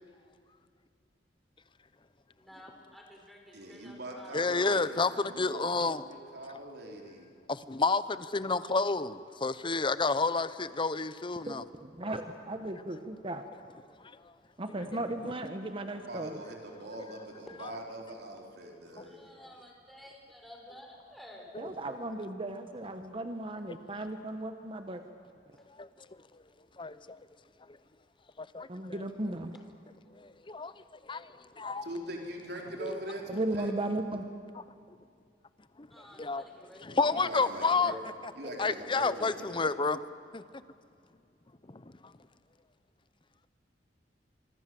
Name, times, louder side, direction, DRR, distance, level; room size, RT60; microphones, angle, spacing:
voice 1, 2.4-4.8 19.0-21.5 35.9-37.2, left 1 dB, ahead, 4.8 m, -52 dB
voice 2, 3.5-7.3 16.0-19.2 31.8-33.7 36.9-38.0 38.4-39.7, right 1 dB, 65° right, 3.9 m, -42 dB
voice 3, 4.3-6.0 7.5-11.6 19.0-19.1 21.5-21.7 23.7-23.8 25.8-25.9 26.8-27.2 28.4-29.0 30.1-31.9 32.8-33.0 35.8-35.9 36.2-36.4 36.8-37.9 38.6-40.0 40.3-40.4 41.7-41.9, left 4 dB, 30° left, 0.8 m, -30 dB
voice 4, 11.8-13.4 14.6-16.4 21.6-25.0 28.7-29.5 33.3-34.3, right 1 dB, 30° right, 1.1 m, -36 dB
25.0 x 24.5 x 7.7 m
head